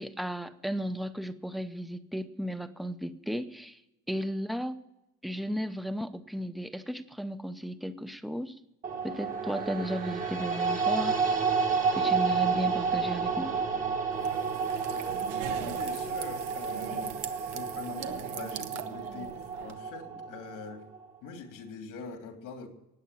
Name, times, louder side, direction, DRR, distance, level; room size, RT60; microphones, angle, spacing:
voice 1, 0.0-3.8 4.1-4.8 5.2-8.6 9.0-11.2 11.9-13.6, equal, ahead, 10 dB, 0.7 m, -34 dB
sound 1, 8.8-21.1, right 5 dB, 25° right, 1.3 m, -30 dB
sound 2, 14.1-19.7, right 11 dB, 90° right, 1.1 m, -42 dB
voice 2, 14.9-15.2 15.6-17.2 17.5-20.8 21.2-22.7, left 4 dB, 85° left, 4 dB, 3.1 m, -43 dB
15.5 x 9.4 x 9.0 m, 0.95 s
cardioid pair, 145°, 31 cm